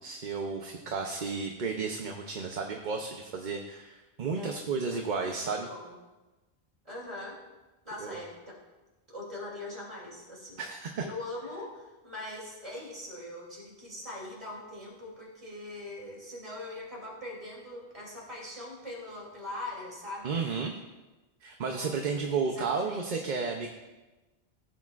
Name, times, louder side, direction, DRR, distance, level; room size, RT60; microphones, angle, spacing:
voice 1, 0.0-5.7 8.0-8.2 10.6-11.0 20.2-20.7 21.4-23.7, right 5 dB, 50° right, 3 dB, 0.8 m, -33 dB
voice 2, 4.3-5.0 5.4-5.9 6.8-7.4 7.8-8.6 9.1-10.6 11.0-20.4 21.7-23.2, left 1 dB, 35° right, -4 dB, 3.0 m, -42 dB
16.5 x 8.3 x 2.4 m, 1.1 s
omnidirectional pair, 1.1 m